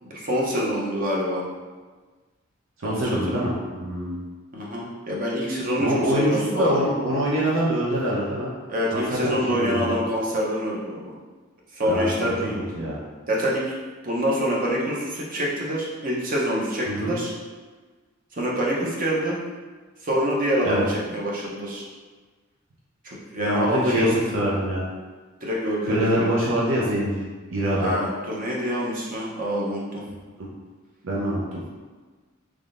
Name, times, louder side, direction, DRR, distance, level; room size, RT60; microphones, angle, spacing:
voice 1, 0.0-1.4 2.8-3.4 4.5-6.7 8.7-11.1 11.7-12.6 13.3-13.7 14.0-17.3 18.3-19.4 20.0-21.8 23.0-24.2 25.4-26.3 27.8-30.0, equal, 45° right, -3 dB, 0.7 m, -26 dB
voice 2, 2.8-4.2 5.8-8.5 8.9-9.9 11.8-12.3 12.7-13.0 16.9-17.2 20.6-20.8 23.4-24.9 25.8-27.2 27.5-27.9 31.0-31.6, right 1 dB, 80° right, -5 dB, 0.7 m, -24 dB
3.5 x 3.2 x 2.5 m, 1.4 s
head